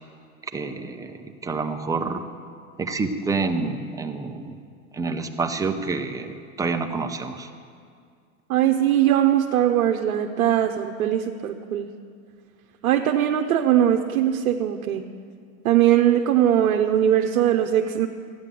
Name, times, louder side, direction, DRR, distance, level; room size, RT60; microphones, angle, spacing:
voice 1, 0.5-2.3 2.8-4.6 4.9-7.5, right 4 dB, 10° right, 6 dB, 0.6 m, -28 dB
voice 2, 8.5-11.9 12.8-15.1 15.6-18.1, right 11 dB, 75° right, 3 dB, 0.9 m, -20 dB
13.5 x 9.4 x 7.5 m, 2.2 s
hypercardioid pair, 125°, 42 cm